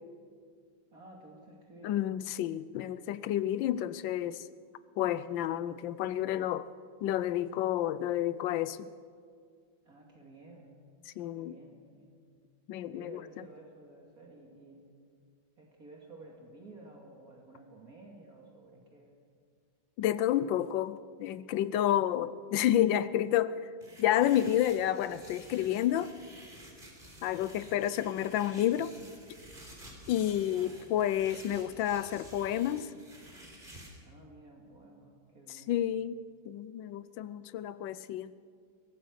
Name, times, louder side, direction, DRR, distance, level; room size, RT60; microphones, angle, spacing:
voice 1, 0.9-1.9 9.8-10.7 11.3-12.1 12.9-14.9 15.6-19.1 21.8-22.2 30.5-30.7 34.0-35.7, right 2 dB, 45° right, 2.9 m, -53 dB
voice 2, 1.8-4.4 5.0-6.7 7.0-8.9 11.1-11.6 12.7-13.2 20.0-23.7 24.0-26.2 27.2-29.0 30.1-32.9 35.5-38.3, left 11 dB, 75° left, 1.4 m, -30 dB
sound 1, 23.8-33.9, right 1 dB, 25° right, 3.9 m, -51 dB
23.5 x 17.5 x 6.6 m
omnidirectional pair, 2.1 m